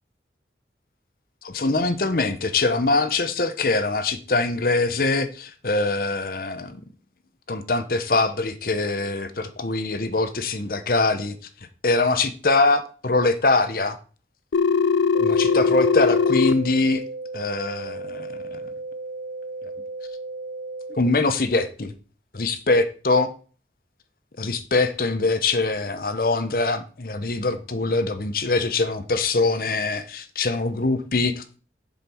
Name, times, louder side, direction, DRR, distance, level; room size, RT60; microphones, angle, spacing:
voice 1, 1.4-6.8 7.5-11.4 11.8-14.0 15.2-17.0 17.3-18.6 20.9-21.9 22.3-23.3 24.4-31.6, left 3 dB, 50° left, 0.8 m, -23 dB
Telephone, 14.5-16.5, left 5 dB, 90° left, 0.5 m, -20 dB
sound 1, 15.1-21.1, right 3 dB, 70° right, 0.5 m, -35 dB
7.4 x 5.5 x 6.0 m
head